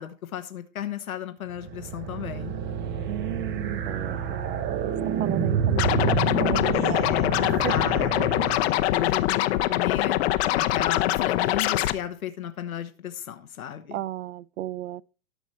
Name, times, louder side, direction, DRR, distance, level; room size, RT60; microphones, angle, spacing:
voice 1, 0.0-2.5 6.7-10.2 10.5-14.0, left 10 dB, 85° left, 1.0 m, -34 dB
sound 1, 1.5-9.0, right 7 dB, 25° right, 0.9 m, -29 dB
voice 2, 3.1-4.9 5.2-7.1 7.6-8.0 13.9-15.0, right 14 dB, 65° right, 0.5 m, -34 dB
Scratching (performance technique), 5.8-11.9, left 15 dB, 50° left, 0.8 m, -24 dB
12.5 x 6.2 x 4.2 m
hypercardioid pair, 120°, 42 cm